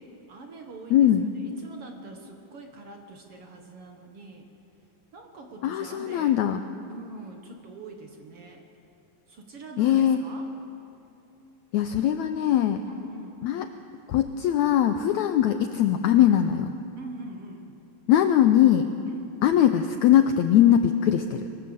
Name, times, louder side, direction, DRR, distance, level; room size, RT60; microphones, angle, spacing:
voice 1, 0.0-4.5 5.1-6.4 6.9-8.7 9.3-10.5 12.8-13.4 17.0-17.8 19.1-19.4, right 2 dB, 55° right, 3 dB, 1.8 m, -43 dB
voice 2, 0.9-1.3 5.6-6.6 9.8-10.2 11.7-12.8 13.4-13.7 14.1-16.7 18.1-18.9 19.4-21.5, left 10 dB, 90° left, 8 dB, 1.6 m, -21 dB
23.0 x 19.5 x 7.9 m, 2.8 s
omnidirectional pair, 4.1 m